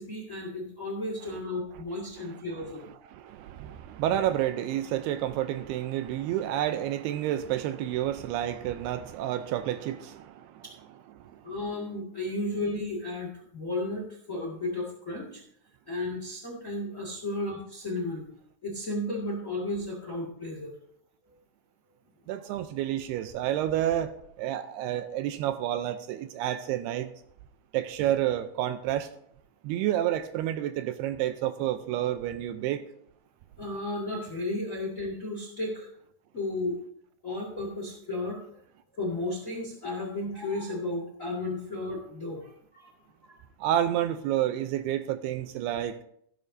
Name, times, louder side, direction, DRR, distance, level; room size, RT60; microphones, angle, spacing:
voice 1, 0.0-2.8 11.4-15.4 15.9-18.2 18.6-20.7 33.6-35.9 36.3-36.8 37.2-38.4 39.0-42.9 43.3-43.4, left 2 dB, 30° left, 0 dB, 1.4 m, -33 dB
voice 2, 2.3-10.7 11.2-11.4 22.3-24.1 24.4-27.1 27.7-29.1 29.6-32.9 43.6-46.0, right 12 dB, 80° right, 10 dB, 2.5 m, -30 dB
16.0 x 11.0 x 2.7 m, 0.69 s
omnidirectional pair, 4.8 m